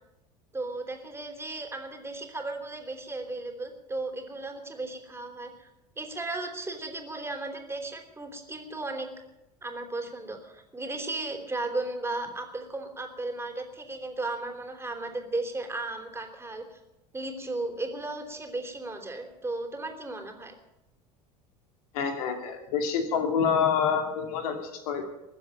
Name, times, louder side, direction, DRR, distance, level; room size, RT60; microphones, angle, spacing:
voice 1, 0.5-5.7 6.0-9.1 9.6-16.8 17.1-20.5, right 2 dB, 10° right, 4 dB, 3.2 m, -35 dB
voice 2, 21.9-25.0, left 6 dB, 65° left, 5 dB, 2.5 m, -27 dB
21.5 x 7.7 x 8.7 m, 0.93 s
figure-of-eight pair, 75°, 21 cm